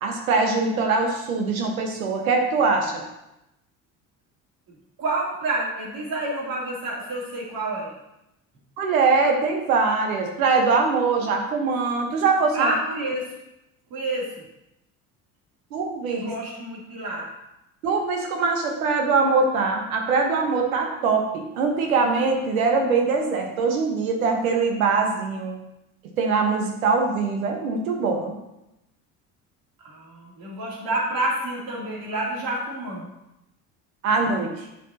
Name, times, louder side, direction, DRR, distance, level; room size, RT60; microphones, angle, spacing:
voice 1, 0.0-3.0 8.8-12.7 15.7-16.3 17.8-25.6 26.2-28.3 34.0-34.7, right 4 dB, 85° right, 2 dB, 1.3 m, -22 dB
voice 2, 4.7-7.9 12.5-13.3 13.9-14.3 16.0-17.3 29.8-33.1, right 2 dB, 55° right, -4 dB, 3.1 m, -28 dB
8.2 x 7.2 x 2.9 m, 0.89 s
hypercardioid pair, 65°, 41 cm